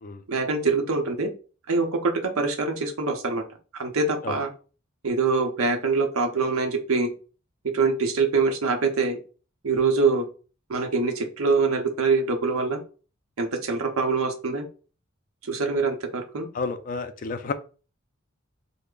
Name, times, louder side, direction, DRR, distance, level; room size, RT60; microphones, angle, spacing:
voice 1, 0.3-1.3 1.7-3.4 3.7-4.5 5.0-7.1 7.7-9.2 9.6-10.3 10.7-12.8 13.4-14.6 15.4-16.5, right 4 dB, 85° right, 5 dB, 0.7 m, -24 dB
voice 2, 16.5-17.5, left 4 dB, 40° left, 10 dB, 0.3 m, -30 dB
3.2 x 2.0 x 3.7 m, 0.36 s
head